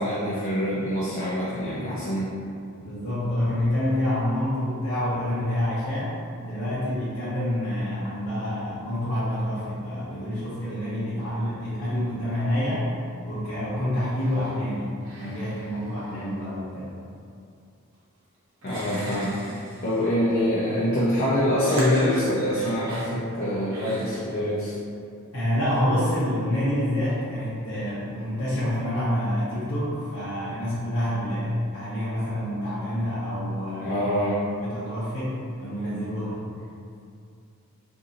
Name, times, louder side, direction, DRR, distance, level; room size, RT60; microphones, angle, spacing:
voice 1, 0.0-2.3 18.6-19.4 19.8-24.7 33.8-34.4, equal, 45° left, -8 dB, 0.5 m, -25 dB
voice 2, 2.8-6.2 6.4-12.9 13.2-14.9 15.2-16.9 25.3-34.0 34.5-36.4, left 1 dB, 75° left, -11 dB, 0.8 m, -27 dB
sound 1, 14.2-14.6 15.0-16.4 17.9-18.0 18.6-20.2 21.6-23.1 23.7-24.2, right 1 dB, 60° right, 0.8 m, -40 dB
2.6 x 2.6 x 3.9 m, 2.4 s
head